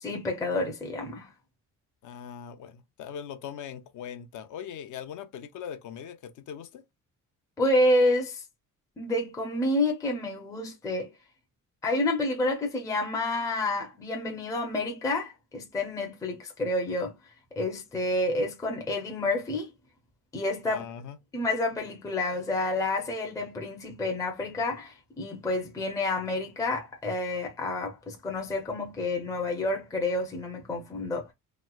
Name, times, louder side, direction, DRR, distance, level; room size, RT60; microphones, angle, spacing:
voice 1, 0.0-1.3 7.6-8.4 9.0-11.1 11.8-17.1 17.6-19.7 20.3-20.8 21.3-31.3, left 2 dB, 10° left, 0.5 m, -29 dB
voice 2, 2.0-6.8 20.7-21.2, left 8 dB, 65° left, 0.6 m, -40 dB
3.2 x 3.0 x 2.2 m
cardioid pair, 180°, 32 cm